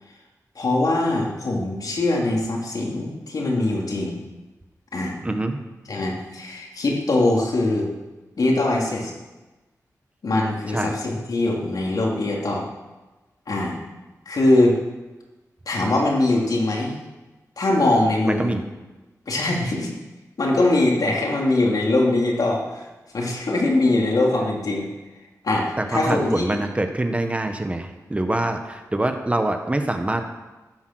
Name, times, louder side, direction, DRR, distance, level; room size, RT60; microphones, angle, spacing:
voice 1, 0.5-4.2 4.9-5.2 5.8-7.9 8.4-9.1 10.2-12.6 13.5-13.8 14.2-14.8 15.6-17.0 17.6-18.6 19.3-19.9 20.4-22.9 23.1-24.9 25.4-26.6, left 2 dB, 70° left, -1 dB, 3.3 m, -22 dB
voice 2, 5.2-5.6 10.7-10.9 18.3-18.6 25.8-30.2, right 1 dB, 20° right, 6 dB, 1.3 m, -25 dB
15.0 x 10.5 x 6.3 m, 1.1 s
wide cardioid pair, 105°, 6 cm